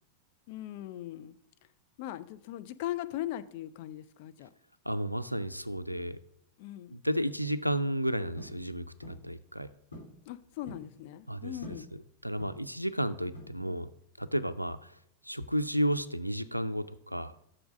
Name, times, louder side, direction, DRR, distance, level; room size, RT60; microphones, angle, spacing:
voice 1, 0.5-1.4 2.0-4.5 6.6-7.0 10.3-11.9, left 13 dB, 50° left, 12 dB, 0.4 m, -39 dB
voice 2, 4.9-6.2 6.9-9.7 11.3-11.6 11.9-13.9 14.2-15.0 15.2-17.4, equal, 90° right, 14 dB, 0.4 m, -32 dB
sound 1, 8.4-8.6 9.0-9.3 9.9-10.2 10.4-10.9 11.6-11.9 12.4-12.7 13.3-13.8, left 1 dB, 85° left, 2.4 m, -47 dB
6.2 x 4.6 x 6.2 m, 0.74 s
figure-of-eight pair, 90°, 0 cm